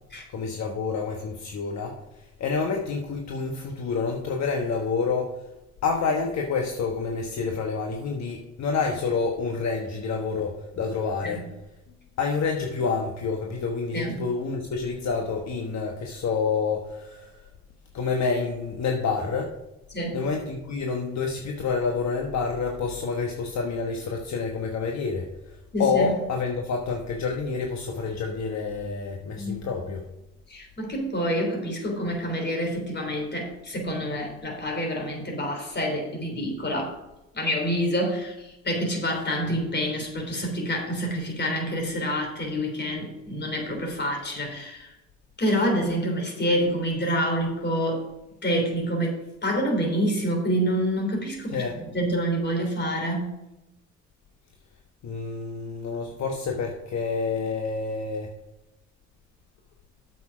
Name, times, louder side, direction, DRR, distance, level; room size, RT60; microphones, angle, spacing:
voice 1, 0.3-5.4 5.8-11.4 12.2-17.3 17.9-19.5 20.1-30.0 51.5-51.8 55.0-58.3, left 4 dB, 65° left, 2 dB, 1.2 m, -28 dB
voice 2, 13.9-14.2 19.9-20.2 25.7-26.1 29.4-29.6 30.5-36.9 37.3-44.9 45.4-48.0 48.4-53.3, equal, 35° left, 2 dB, 3.6 m, -27 dB
8.4 x 7.0 x 4.9 m, 0.96 s
cardioid pair, 90°, 30 cm